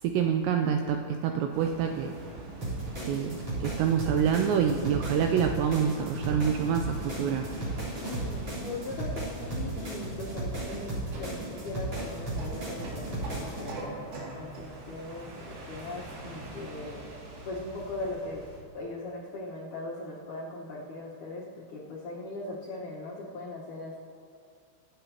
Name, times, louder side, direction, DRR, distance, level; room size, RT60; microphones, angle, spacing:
voice 1, 0.0-2.2 3.0-7.5, right 7 dB, 90° right, 4 dB, 2.4 m, -27 dB
sound 1, 1.5-18.6, right 2 dB, 70° right, 4.8 m, -45 dB
sound 2, 2.6-13.6, right 2 dB, 30° right, 4.2 m, -35 dB
voice 2, 8.0-17.0 17.5-18.5 18.7-24.0, left 2 dB, 80° left, -5 dB, 1.7 m, -39 dB
24.0 x 9.2 x 2.9 m, 2.3 s
omnidirectional pair, 5.6 m